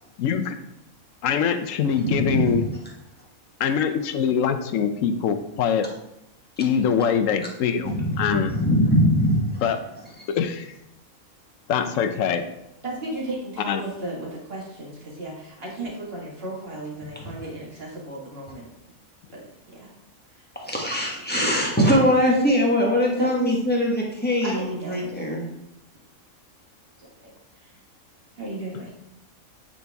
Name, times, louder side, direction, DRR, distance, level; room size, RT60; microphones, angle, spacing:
voice 1, 0.2-0.6 1.2-2.6 3.6-5.9 6.6-8.5 9.6-9.8 10.3-10.7 11.7-12.4 13.7-13.8, left 7 dB, 70° left, 8 dB, 1.0 m, -23 dB
voice 2, 2.0-2.6 7.8-9.6 17.2-17.3 20.5-25.4, equal, 10° left, -3 dB, 1.1 m, -22 dB
voice 3, 12.8-18.7 19.3-19.9 20.3-20.4 23.2-23.3 24.4-25.5 25.9-26.0 27.0-27.7 28.4-28.9, right 1 dB, 45° right, -3 dB, 1.9 m, -35 dB
8.7 x 4.1 x 3.4 m, 0.83 s
omnidirectional pair, 1.5 m